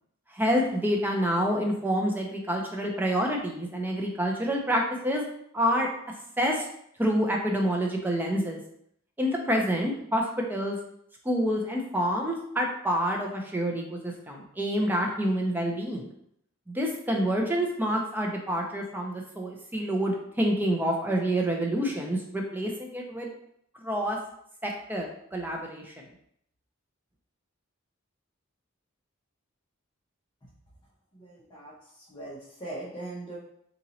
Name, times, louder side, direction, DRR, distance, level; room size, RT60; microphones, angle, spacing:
voice 1, 0.3-5.2 5.5-5.9 6.4-6.7 7.0-8.6 9.2-10.8 11.2-16.1 16.7-23.3 23.8-24.2 24.6-25.9, equal, 10° right, 0 dB, 0.4 m, -27 dB
voice 2, 31.2-31.7 32.1-33.4, right 2 dB, 20° left, -8 dB, 0.7 m, -40 dB
2.9 x 2.7 x 4.0 m, 0.71 s
head